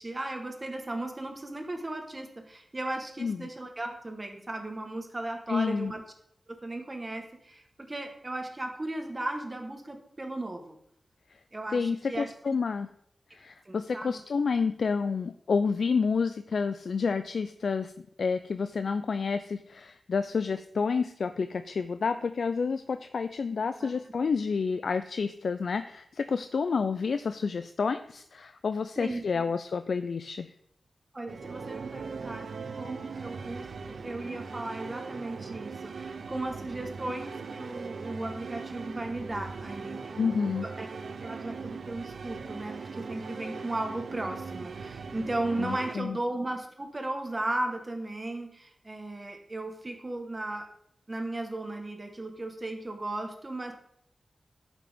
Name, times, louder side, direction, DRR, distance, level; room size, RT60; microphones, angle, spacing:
voice 1, 0.0-6.0 6.5-10.8 11.5-12.3 13.6-14.2 23.8-23.9 29.0-29.4 31.1-40.1 40.4-40.9 41.2-50.7 51.1-53.7, right 2 dB, 25° right, 4 dB, 1.3 m, -36 dB
voice 2, 5.5-5.9 11.7-12.9 13.3-17.9 18.2-30.5 40.2-40.7 45.6-46.2, left 5 dB, 75° left, 10 dB, 0.3 m, -29 dB
sound 1, 31.3-46.0, right 5 dB, 80° right, 0.5 m, -40 dB
11.0 x 5.9 x 3.5 m, 0.74 s
wide cardioid pair, 115°, 0 cm